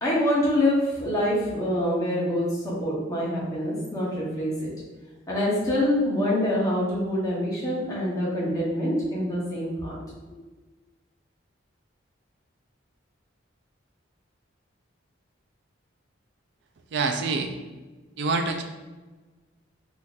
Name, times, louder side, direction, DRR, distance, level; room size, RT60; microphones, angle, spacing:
voice 1, 0.0-4.7 5.3-9.9, left 1 dB, 15° left, -6 dB, 0.8 m, -25 dB
voice 2, 16.9-17.5 18.2-18.6, right 3 dB, 60° right, 6 dB, 0.3 m, -26 dB
3.6 x 2.7 x 2.4 m, 1.3 s
head